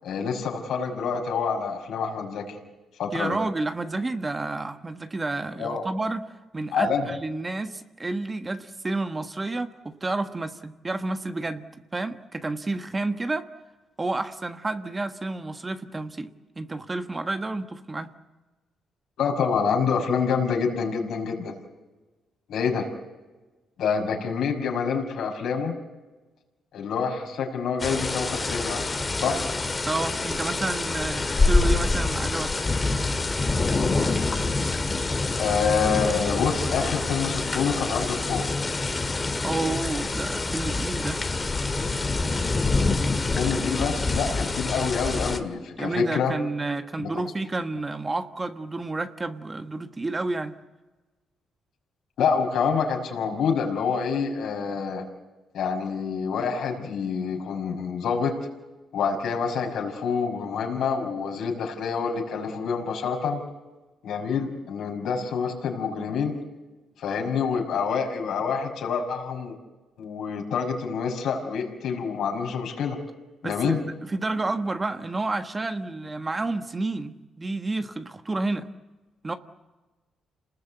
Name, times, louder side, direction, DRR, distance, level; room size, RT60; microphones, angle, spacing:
voice 1, 0.0-2.6 3.0-3.4 5.6-5.8 6.7-7.0 19.2-21.5 22.5-22.9 23.8-25.8 26.7-28.9 29.2-29.4 35.4-38.4 43.4-46.3 47.0-47.2 52.2-55.0 55.5-58.4 58.9-63.4 64.0-66.3 67.0-69.6 70.0-73.0 73.4-73.8, left 6 dB, 75° left, 1 dB, 5.8 m, -27 dB
voice 2, 3.1-6.2 6.5-13.5 14.0-16.3 16.6-18.1 29.9-32.5 39.4-41.2 45.8-50.6 73.4-78.7 79.2-79.3, right 2 dB, 25° right, 8 dB, 1.4 m, -30 dB
sound 1, 27.8-45.4, left 3 dB, 25° left, 2.2 m, -26 dB
28.5 x 20.0 x 8.4 m, 1.2 s
cardioid pair, 90°, 0 cm